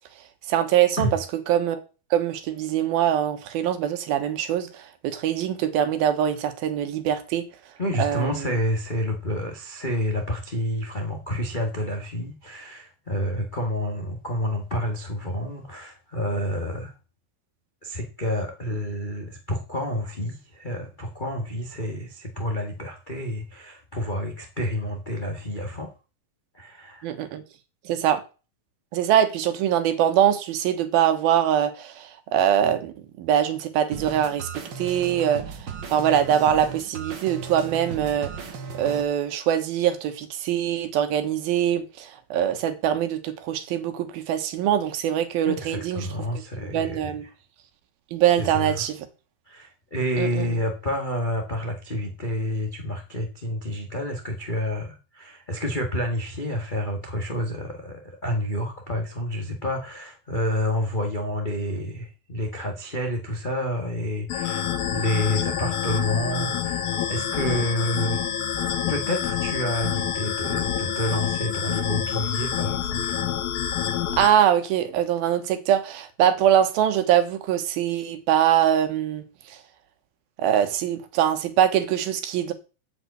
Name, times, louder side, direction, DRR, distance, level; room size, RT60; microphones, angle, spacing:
voice 1, 0.5-1.1 1.5-1.8 2.1-7.5 8.0-8.4 27.0-27.4 27.9-28.2 28.9-34.5 34.8-38.3 38.8-46.1 46.6-47.2 48.1-49.0 50.2-50.5 74.2-79.2 79.5-79.6 80.4-82.5, right 10 dB, 85° right, 3.1 m, -23 dB
voice 2, 7.8-16.9 17.8-25.9 26.5-27.1 45.4-47.3 48.4-48.9 49.5-68.2 68.9-73.1, left 1 dB, 55° left, 0.5 m, -29 dB
sound 1, 33.9-39.0, right 5 dB, 50° right, 1.4 m, -36 dB
sound 2, 64.3-74.3, left 9 dB, 90° left, 3.1 m, -27 dB
8.2 x 7.6 x 8.1 m
omnidirectional pair, 4.2 m